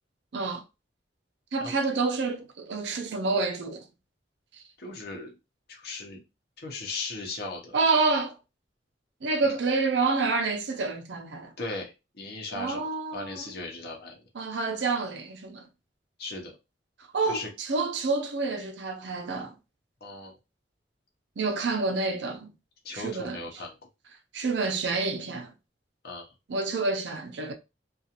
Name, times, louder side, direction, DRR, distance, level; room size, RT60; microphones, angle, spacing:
voice 1, 0.3-0.6 1.5-3.8 7.7-8.4 9.2-11.5 12.5-13.4 14.4-15.7 17.1-17.4 17.7-19.5 21.4-22.5 22.9-23.4 24.3-25.5 26.5-27.5, right 3 dB, 80° right, 0.6 m, -28 dB
voice 2, 4.8-5.3 5.7-6.2 6.6-7.8 11.6-12.8 13.1-14.2 16.2-16.6 17.3-17.5 20.0-20.4 22.8-23.8 26.0-26.3, left 3 dB, 65° left, 0.8 m, -37 dB
2.4 x 2.4 x 2.8 m
head